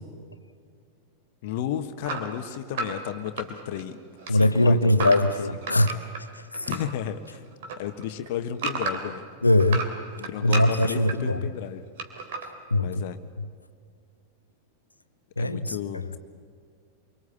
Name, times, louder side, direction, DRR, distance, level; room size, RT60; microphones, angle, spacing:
voice 1, 1.4-4.0 4.3-5.1 6.7-7.4 7.8-9.3 10.2-11.9 12.8-13.2 15.4-16.2, left 10 dB, 50° left, 9 dB, 1.5 m, -33 dB
sound 1, 2.0-6.9 7.3-9.2 9.6-11.2 12.0-12.5, right 4 dB, 55° right, 3.0 m, -33 dB
voice 2, 4.3-6.0 6.5-6.7 9.4-9.8 10.4-11.4 12.7-13.0 15.4-16.1, left 1 dB, 85° left, 12 dB, 1.1 m, -21 dB
26.0 x 24.0 x 8.6 m, 2.1 s
figure-of-eight pair, 90°, 0 cm